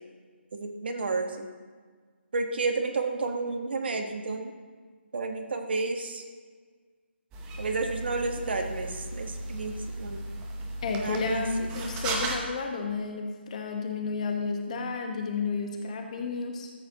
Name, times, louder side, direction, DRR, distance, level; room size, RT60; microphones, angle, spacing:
voice 1, 0.6-1.5 2.3-4.5 5.1-6.2 7.6-10.2 11.0-11.9, right 3 dB, 60° right, 4 dB, 1.3 m, -31 dB
sound 1, 7.3-12.4, right 2 dB, 15° right, 0.8 m, -36 dB
voice 2, 10.8-16.7, left 4 dB, 35° left, 3 dB, 1.3 m, -31 dB
13.5 x 8.4 x 2.9 m, 1.6 s
figure-of-eight pair, 160°, 6 cm